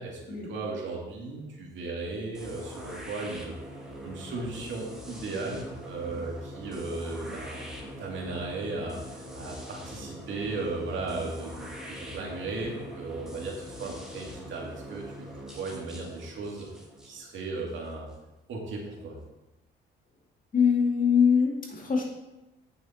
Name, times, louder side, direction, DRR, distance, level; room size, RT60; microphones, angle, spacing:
voice 1, 0.5-3.5 4.0-7.6 8.0-15.3 15.5-16.7 17.0-18.1 18.5-19.2, right 3 dB, 70° right, -1 dB, 2.4 m, -36 dB
sound 1, 2.3-18.2, equal, 5° right, 2.3 m, -43 dB
voice 2, 20.5-22.0, left 6 dB, 45° left, 0 dB, 2.3 m, -23 dB
8.6 x 7.0 x 4.3 m, 1.0 s
cardioid pair, 90°, 20 cm